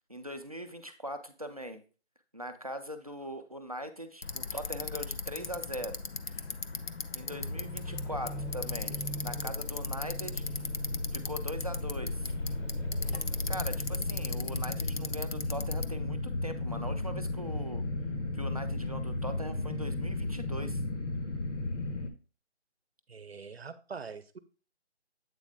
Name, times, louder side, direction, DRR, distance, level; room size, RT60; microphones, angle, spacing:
voice 1, 0.1-1.8 2.3-6.0 7.1-10.4 11.1-12.3 13.5-17.8 18.3-20.8, equal, 35° right, 0.5 m, -41 dB
Bicycle, 4.2-15.9, left 4 dB, 60° left, 0.6 m, -39 dB
sound 1, 7.3-22.1, left 2 dB, 85° left, 1.4 m, -35 dB
voice 2, 23.1-24.4, right 5 dB, 60° right, 0.8 m, -43 dB
8.2 x 4.1 x 3.5 m
figure-of-eight pair, 175°, 35 cm